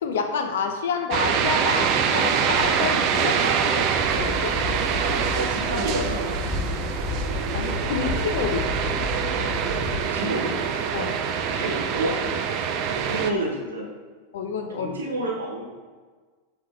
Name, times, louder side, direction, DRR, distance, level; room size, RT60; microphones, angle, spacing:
voice 1, 0.0-3.9 4.1-4.6 7.5-8.7 10.9-11.2 14.3-14.9, left 5 dB, 60° left, 6 dB, 0.4 m, -28 dB
sound 1, 1.1-13.3, right 7 dB, 40° right, 0.3 m, -25 dB
sound 2, 3.9-10.1, left 4 dB, ahead, 0.6 m, -31 dB
voice 2, 5.0-6.4 10.1-10.6 11.5-12.1 12.6-13.9 14.8-15.7, right 1 dB, 70° right, -2 dB, 0.9 m, -29 dB
7.1 x 2.9 x 2.4 m, 1.4 s
figure-of-eight pair, 90°, 0 cm